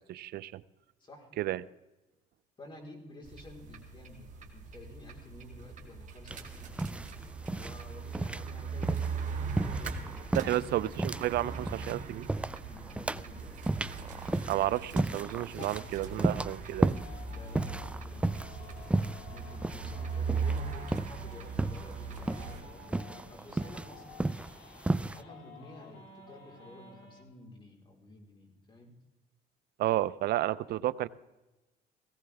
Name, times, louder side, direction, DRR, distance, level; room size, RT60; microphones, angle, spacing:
voice 1, 0.1-0.6 1.4-1.6 10.3-12.3 14.5-16.9 29.8-31.1, right 14 dB, 70° right, 17 dB, 0.6 m, -31 dB
voice 2, 1.0-1.4 2.6-7.1 7.4-11.0 12.7-13.6 17.3-24.1 25.0-28.9, left 2 dB, 30° left, 0 dB, 4.3 m, -52 dB
sound 1, 3.2-22.6, right 5 dB, 45° right, 2.2 m, -40 dB
sound 2, 6.3-25.2, right 2 dB, 5° right, 0.4 m, -34 dB
sound 3, 15.6-27.2, left 3 dB, 70° left, 3.8 m, -52 dB
18.0 x 16.0 x 3.5 m, 1.1 s
cardioid pair, 110°, 17 cm